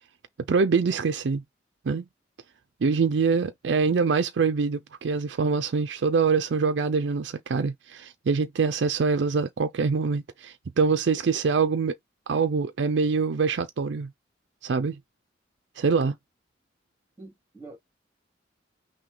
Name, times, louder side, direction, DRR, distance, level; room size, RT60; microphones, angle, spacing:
voice 1, 0.5-1.4 1.9-2.0 2.8-12.0 12.3-14.1 14.6-15.0 15.8-16.1, right 5 dB, 70° right, 0.4 m, -24 dB
voice 2, 17.2-17.8, right 3 dB, 15° right, 2.3 m, -45 dB
5.9 x 2.2 x 3.8 m
head